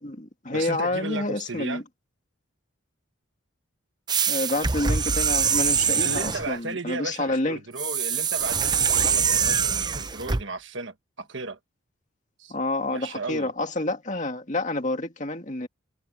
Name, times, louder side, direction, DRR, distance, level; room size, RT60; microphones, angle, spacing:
voice 1, 0.0-1.8 4.3-7.6 12.5-15.7, left 2 dB, 35° left, 2.1 m, -28 dB
voice 2, 0.5-1.8 6.0-11.6 12.4-12.5 12.9-13.5, right 3 dB, 60° right, 1.5 m, -35 dB
sound 1, 4.1-6.5 7.8-10.4, right 6 dB, 20° right, 0.6 m, -24 dB
head